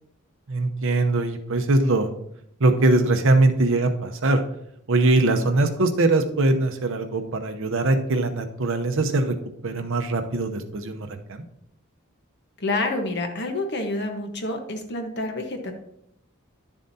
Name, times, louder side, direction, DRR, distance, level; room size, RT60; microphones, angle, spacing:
voice 1, 0.5-2.1 2.6-4.4 4.9-9.4 9.6-11.4, right 2 dB, 65° right, 6 dB, 0.8 m, -21 dB
voice 2, 12.6-15.7, left 2 dB, 55° left, 4 dB, 1.2 m, -28 dB
11.0 x 7.1 x 2.8 m, 0.75 s
head